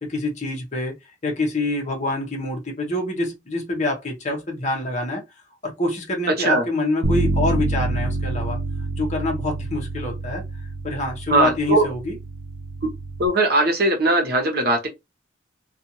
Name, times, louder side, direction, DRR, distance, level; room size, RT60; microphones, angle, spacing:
voice 1, 0.0-0.9 1.2-5.2 5.6-8.6 9.0-10.4 10.8-12.2, left 2 dB, 40° left, 0.8 m, -26 dB
Bass guitar, 7.0-13.3, right 2 dB, 75° right, 0.4 m, -27 dB
voice 2, 11.3-11.9 13.2-14.9, right 2 dB, 50° right, 1.0 m, -19 dB
2.5 x 2.4 x 2.8 m
head